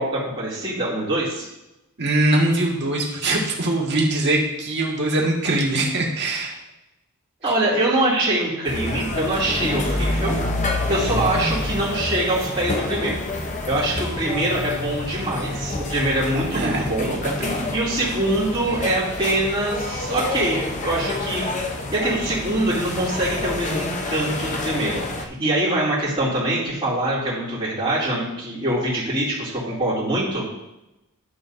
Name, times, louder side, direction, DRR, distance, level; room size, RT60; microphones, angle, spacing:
voice 1, 0.0-1.5 7.4-10.4 10.9-13.3 13.7-17.1 17.7-21.7 21.9-30.5, right 1 dB, 25° right, -9 dB, 2.6 m, -24 dB
voice 2, 2.0-6.5 7.4-7.5 16.5-17.7, right 1 dB, 50° right, -2 dB, 1.8 m, -22 dB
sound 1, 8.6-25.2, left 2 dB, 35° left, 0.8 m, -28 dB
11.5 x 6.9 x 2.7 m, 0.94 s
head